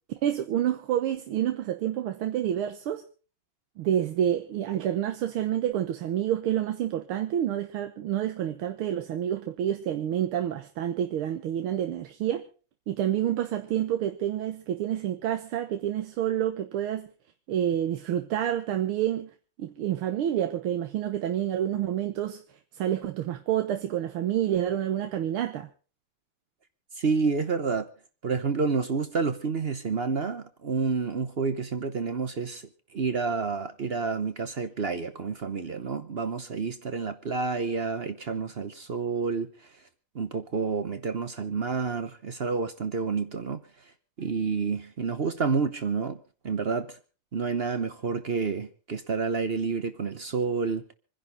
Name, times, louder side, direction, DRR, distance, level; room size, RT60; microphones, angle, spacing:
voice 1, 0.2-3.0 3.8-12.4 12.9-17.1 17.5-19.3 19.6-22.4 22.8-25.7, right 11 dB, 85° right, 1.9 m, -28 dB
voice 2, 27.0-27.9 28.2-39.7 40.1-43.6 44.2-47.0 47.3-50.8, right 5 dB, 55° right, 0.6 m, -29 dB
26.5 x 10.5 x 4.0 m
omnidirectional pair, 2.3 m